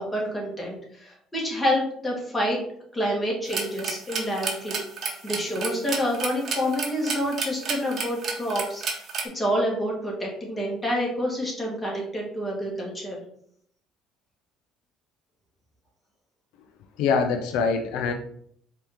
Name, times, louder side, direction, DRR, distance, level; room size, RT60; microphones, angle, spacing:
voice 1, 0.0-2.6 2.9-4.8 5.2-8.8 9.3-13.2, equal, 15° left, -2 dB, 1.8 m, -28 dB
sound 1, 3.5-9.2, right 4 dB, 50° right, 0.9 m, -31 dB
voice 2, 17.0-18.1, left 5 dB, 80° left, 6 dB, 0.4 m, -24 dB
4.5 x 2.8 x 3.5 m, 0.66 s
supercardioid pair, 90°, 0 cm